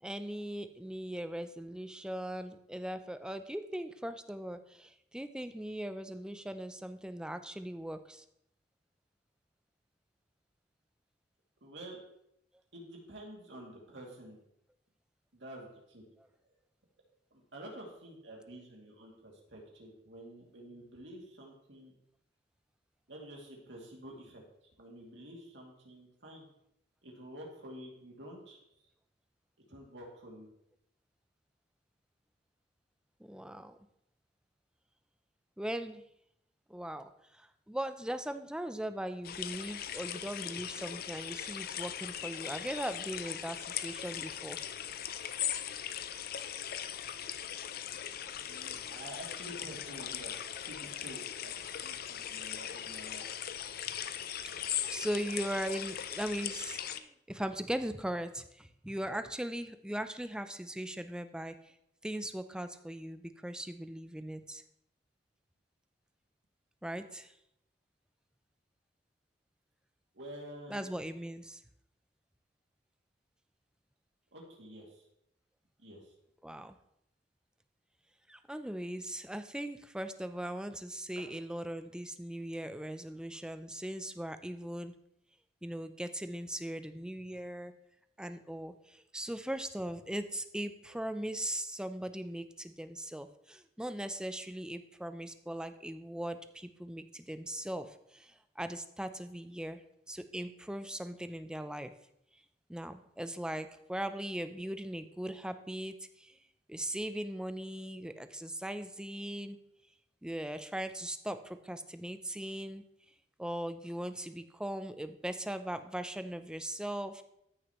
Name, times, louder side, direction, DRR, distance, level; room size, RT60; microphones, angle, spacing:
voice 1, 0.0-8.2 33.2-33.8 35.6-36.0 36.7-44.6 54.9-61.7 62.0-64.6 66.8-67.3 70.7-71.6 76.4-76.8 78.3-84.9 85.6-87.7 88.2-99.8 100.1-101.9 102.7-106.4 106.7-109.6 110.2-112.8 113.4-117.2, right 1 dB, 5° right, 10 dB, 0.5 m, -39 dB
voice 2, 11.6-12.0 12.7-14.4 15.3-16.0 16.4-16.5 17.3-21.9 23.1-24.4 24.8-26.5 27.0-28.9 29.7-30.5 48.3-53.2 70.1-70.9 74.3-75.0 75.8-76.1, right 1 dB, 75° right, -1 dB, 2.5 m, -49 dB
sound 1, 39.2-57.0, left 10 dB, 55° left, 0.5 m, -39 dB
14.0 x 6.5 x 3.0 m, 0.78 s
head